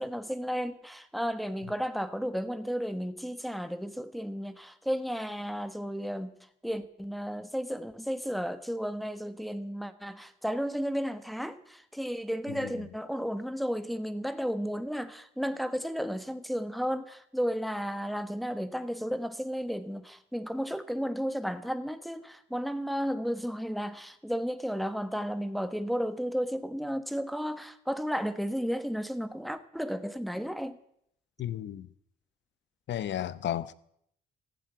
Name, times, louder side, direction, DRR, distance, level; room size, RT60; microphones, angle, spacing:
voice 1, 0.0-6.3 6.6-30.8, equal, ahead, 1.2 m, -33 dB
voice 2, 12.5-12.9 31.4-31.9 32.9-33.7, left 11 dB, 65° left, 0.8 m, -34 dB
15.0 x 7.7 x 9.1 m
cardioid pair, 90°, 20 cm